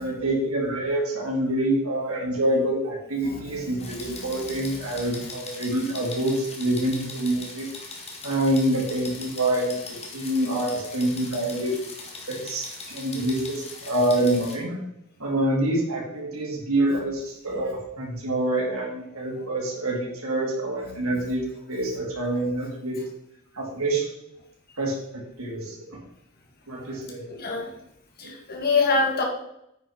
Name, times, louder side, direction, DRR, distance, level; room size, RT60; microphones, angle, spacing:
voice 1, 0.0-7.7 8.2-11.7 12.3-14.8 15.2-21.4 21.7-23.0 23.5-24.1 24.8-25.7 26.7-27.3 28.2-28.3, right 1 dB, 80° right, -3 dB, 3.5 m, -26 dB
sound 1, 3.8-14.6, left 3 dB, 30° left, 1.8 m, -40 dB
voice 2, 27.3-27.7 28.2-29.2, left 4 dB, 45° left, 1 dB, 2.1 m, -24 dB
8.9 x 5.9 x 5.4 m, 0.80 s
head